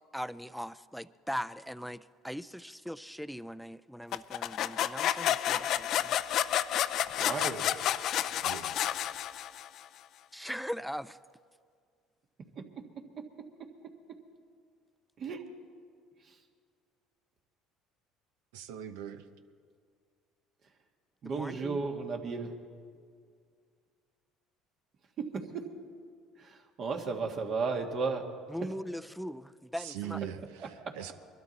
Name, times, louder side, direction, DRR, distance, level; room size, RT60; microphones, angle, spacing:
voice 1, 0.1-6.1 10.3-11.2 21.2-21.8 28.5-30.2, equal, ahead, 16 dB, 0.4 m, -40 dB
sound 1, 4.1-9.8, left 11 dB, 60° left, 0.4 m, -30 dB
voice 2, 7.2-7.6 15.2-15.4 21.2-22.5 25.2-25.6 26.4-28.2 30.8-30.9, right 4 dB, 50° right, 3 dB, 1.6 m, -34 dB
voice 3, 8.3-9.0 18.5-19.2 29.8-31.1, right 10 dB, 85° right, 10 dB, 0.8 m, -41 dB
22.0 x 12.5 x 4.1 m, 2.1 s
supercardioid pair, 85°, 0 cm